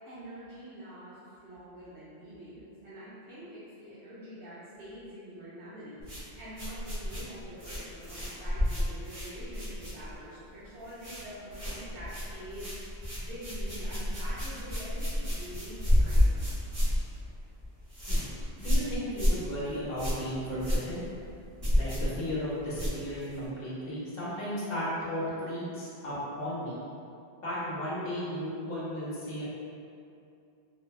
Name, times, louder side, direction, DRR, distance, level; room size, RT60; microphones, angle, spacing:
voice 1, 0.1-6.0 6.4-12.9 13.1-16.3, equal, 75° right, -13 dB, 0.9 m, -45 dB
sound 1, 6.0-10.4 10.6-11.2 11.5-23.5, left 1 dB, 35° right, 0.8 m, -30 dB
voice 2, 18.6-21.0 21.8-26.8 27.4-29.4, equal, 60° left, -8 dB, 0.9 m, -35 dB
2.6 x 2.1 x 2.2 m, 2.6 s
omnidirectional pair, 1.1 m